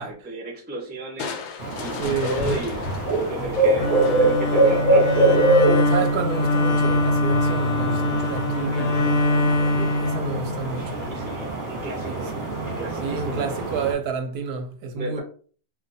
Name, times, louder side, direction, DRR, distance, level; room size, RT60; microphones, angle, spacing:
voice 1, 0.0-1.4 1.8-2.8 3.1-5.3 9.7-10.0 10.9-12.3 12.8-13.5 15.0-15.2, right 1 dB, 15° right, 0.3 m, -34 dB
Crushing, 1.2-4.6, left 3 dB, 70° left, 0.8 m, -33 dB
sound 1, 1.6-13.9, right 2 dB, 35° right, 1.0 m, -24 dB
voice 2, 2.0-2.4 5.9-9.0 10.0-11.1 12.1-12.4 13.0-15.2, right 6 dB, 70° right, 1.0 m, -30 dB
Bowed string instrument, 3.7-10.9, left 2 dB, 90° left, 1.2 m, -23 dB
2.5 x 2.4 x 3.9 m
omnidirectional pair, 1.8 m